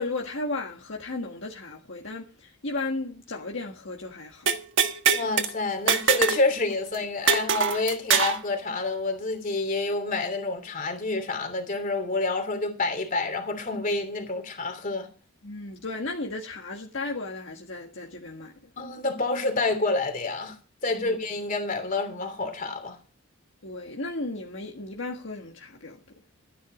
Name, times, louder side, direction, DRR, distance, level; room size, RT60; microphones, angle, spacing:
voice 1, 0.0-4.5 15.4-18.5 20.9-21.1 23.6-26.0, left 2 dB, 60° left, 1.6 m, -34 dB
sound 1, 4.5-5.5 5.9-6.4 6.7-6.8 7.3-8.4, right 6 dB, 60° right, 1.4 m, -23 dB
voice 2, 5.1-15.1 18.8-20.5 20.8-23.0, left 3 dB, 40° left, 3.0 m, -28 dB
13.5 x 10.0 x 5.1 m
head